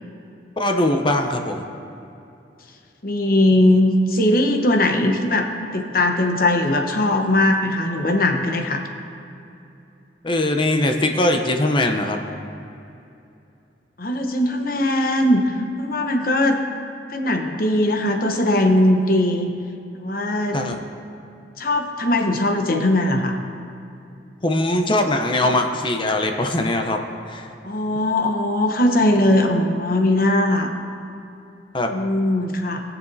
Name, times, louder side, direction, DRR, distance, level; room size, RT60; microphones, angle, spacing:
voice 1, 0.6-1.6 10.2-12.2 20.5-20.8 24.4-27.0 27.3-27.5 31.7-31.9, left 1 dB, 30° left, 4 dB, 0.6 m, -21 dB
voice 2, 3.0-8.8 14.0-16.6 17.1-19.5 19.9-20.6 21.6-23.4 27.6-30.7 31.9-32.8, left 1 dB, 55° left, 4 dB, 1.0 m, -20 dB
20.5 x 7.2 x 2.7 m, 2.7 s
head